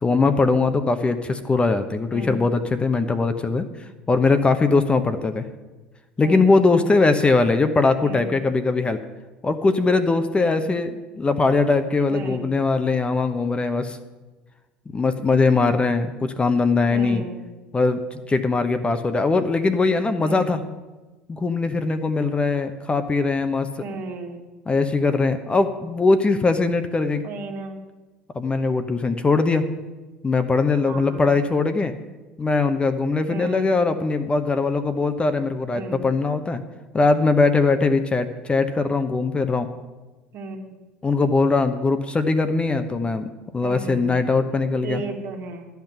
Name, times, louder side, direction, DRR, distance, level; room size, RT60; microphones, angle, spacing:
voice 1, 0.0-3.7 4.1-5.4 6.2-9.0 9.4-14.0 14.9-17.2 17.7-20.6 21.3-23.7 24.7-27.2 28.3-29.6 30.2-31.9 32.4-36.6 36.9-39.7 41.0-43.3 43.5-45.0, left 3 dB, 20° left, 9 dB, 0.9 m, -21 dB
voice 2, 2.1-2.4 6.2-6.6 8.0-8.5 12.1-12.5 16.9-17.5 20.2-20.6 23.8-24.4 27.2-27.8 30.9-31.4 33.3-33.7 35.7-36.1 40.3-40.8 43.6-44.3 44.8-45.7, right 3 dB, 50° right, 3 dB, 1.8 m, -34 dB
12.0 x 5.9 x 8.9 m, 1.2 s
hypercardioid pair, 70°, 5 cm